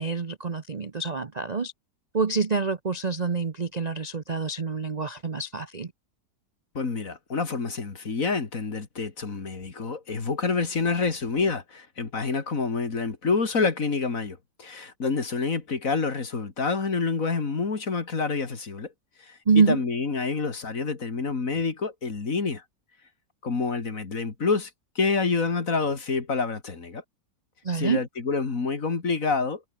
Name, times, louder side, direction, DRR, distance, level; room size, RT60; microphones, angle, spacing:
voice 1, 0.0-1.7 2.1-5.9 19.5-19.8 27.6-28.0, right 5 dB, 35° right, 0.7 m, -26 dB
voice 2, 6.7-18.9 19.2-22.6 23.4-24.7 25.0-27.0 27.7-29.6, left 4 dB, 50° left, 2.7 m, -27 dB
omnidirectional pair, 1.8 m